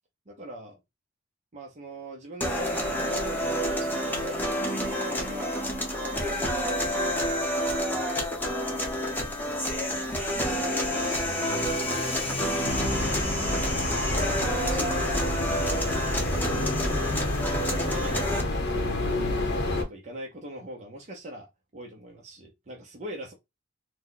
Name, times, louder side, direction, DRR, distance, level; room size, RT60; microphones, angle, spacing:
voice 1, 0.3-0.8 1.5-5.6 6.0-7.9 9.2-9.3 9.6-9.9 10.3-11.4 11.9-12.5 12.8-15.8 16.3-19.2 19.4-23.3, right 1 dB, 35° right, 0.7 m, -43 dB
sound 1, 2.4-18.4, equal, 10° left, 0.8 m, -29 dB
Car / Accelerating revving vroom, 8.9-15.1, left 3 dB, 30° left, 0.4 m, -42 dB
sound 2, 12.7-19.8, left 1 dB, 55° left, 0.8 m, -29 dB
2.8 x 2.1 x 3.8 m
head